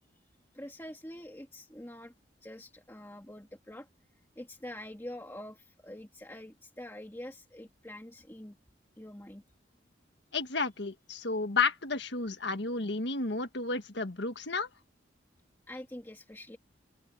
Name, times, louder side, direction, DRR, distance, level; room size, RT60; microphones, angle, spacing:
voice 1, 0.5-2.1 2.4-3.9 4.4-8.6 9.0-9.4 15.7-16.6, left 1 dB, 10° left, 2.0 m, -45 dB
voice 2, 10.3-14.7, left 4 dB, 70° left, 1.6 m, -32 dB
open air
head